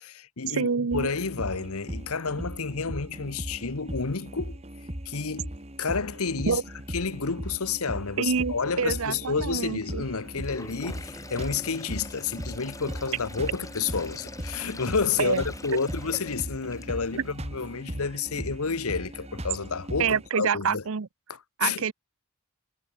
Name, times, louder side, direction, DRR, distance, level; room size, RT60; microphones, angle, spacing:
voice 1, 0.0-4.6 5.0-5.5 5.8-6.6 6.9-20.8 21.3-21.8, left 5 dB, 80° left, 1.1 m, -30 dB
voice 2, 0.5-1.1 6.5-6.6 8.2-10.0 15.2-15.4 15.7-15.8 20.0-21.1 21.6-21.9, right 6 dB, 70° right, 0.7 m, -27 dB
sound 1, 0.9-20.3, right 1 dB, 30° right, 2.8 m, -38 dB
Sink (filling or washing), 10.3-17.2, left 2 dB, 15° left, 1.1 m, -44 dB
head